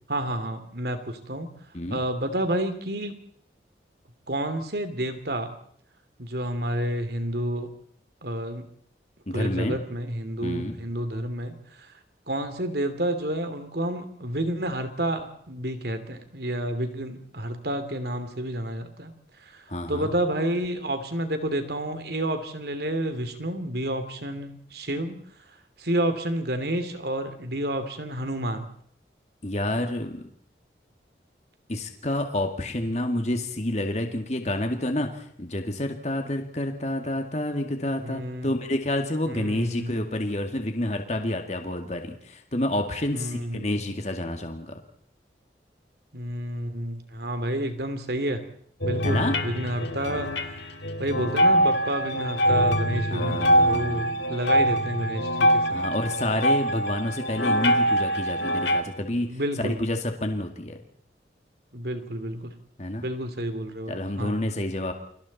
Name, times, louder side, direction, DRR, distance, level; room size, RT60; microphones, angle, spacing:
voice 1, 0.1-1.5 1.9-3.1 4.3-5.5 6.2-7.7 8.2-8.6 9.3-11.9 12.3-19.1 19.4-25.2 25.8-28.6 38.0-38.5 39.3-40.1 43.1-43.8 46.1-48.4 48.8-50.3 50.6-50.7 51.0-55.9 59.3-59.8 61.7-62.6 63.0-64.5, right 1 dB, 60° right, 8 dB, 2.9 m, -30 dB
voice 2, 9.3-9.8 10.4-10.8 19.7-20.1 29.4-30.3 31.7-44.8 49.0-49.3 53.1-54.1 55.7-60.8 62.8-63.1 63.9-64.9, left 1 dB, 40° left, 5 dB, 2.2 m, -29 dB
sound 1, 48.8-58.8, equal, 75° left, 1.9 m, -24 dB
29.5 x 24.5 x 4.3 m, 0.64 s
head